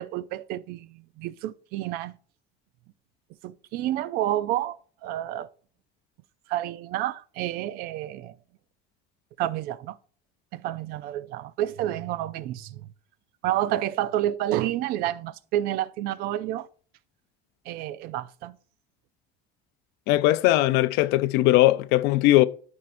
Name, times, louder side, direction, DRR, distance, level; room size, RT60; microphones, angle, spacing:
voice 1, 0.0-2.2 3.4-5.5 6.5-8.4 9.4-10.0 10.5-12.9 13.4-16.7 17.7-18.6, right 13 dB, 65° right, 0.4 m, -29 dB
voice 2, 20.1-22.5, left 16 dB, 85° left, 0.5 m, -19 dB
12.5 x 4.5 x 2.6 m
cardioid pair, 175°, 17 cm